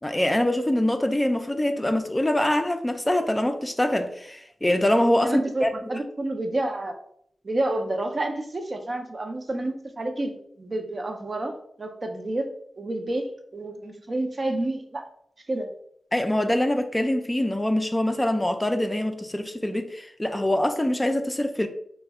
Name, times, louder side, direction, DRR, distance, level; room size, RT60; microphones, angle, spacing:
voice 1, 0.0-6.0 16.1-21.7, left 1 dB, 15° left, 0.3 m, -24 dB
voice 2, 5.2-7.0 7.4-10.3 10.6-12.5 12.8-15.1 15.5-15.7, right 1 dB, 45° right, 0.5 m, -29 dB
3.3 x 2.1 x 3.3 m
cardioid pair, 50°, 0 cm